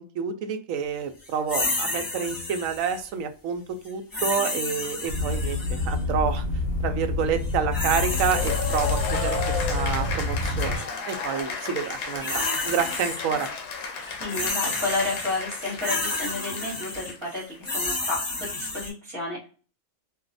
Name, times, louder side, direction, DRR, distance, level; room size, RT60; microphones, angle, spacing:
voice 1, 0.0-6.4 6.8-13.5, right 7 dB, 80° right, 8 dB, 1.0 m, -29 dB
sound 1, 1.5-3.1 4.1-6.0 7.4-9.9 10.6-10.8 11.9-13.5 13.8-18.9, left 2 dB, 15° left, 1.3 m, -31 dB
sound 2, 5.1-10.8, left 3 dB, 50° left, 1.2 m, -27 dB
Cheering / Applause, 8.1-17.7, left 5 dB, 75° left, 1.0 m, -33 dB
voice 2, 14.2-19.4, left 2 dB, 20° right, -5 dB, 1.8 m, -31 dB
3.0 x 2.8 x 2.5 m, 0.38 s
omnidirectional pair, 1.4 m